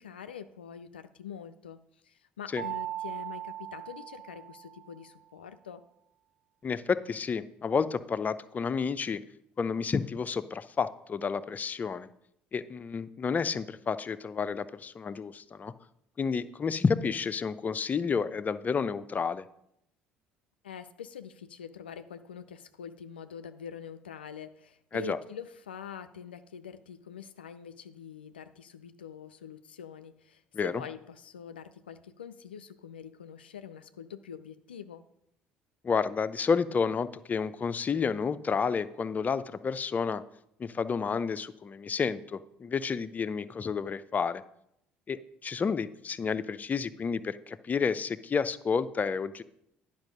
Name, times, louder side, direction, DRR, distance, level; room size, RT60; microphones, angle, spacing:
voice 1, 0.0-5.8 20.6-35.0, left 7 dB, 85° left, 10 dB, 0.4 m, -45 dB
Mallet percussion, 2.6-5.1, right 13 dB, 75° right, 0.9 m, -39 dB
voice 2, 6.6-9.2 9.6-12.1 12.5-15.7 16.2-19.4 24.9-25.2 30.5-30.7 35.8-40.2 40.6-44.4 45.1-49.4, left 5 dB, 30° left, 13 dB, 0.5 m, -30 dB
10.5 x 5.3 x 5.1 m, 0.75 s
figure-of-eight pair, 55°, 5 cm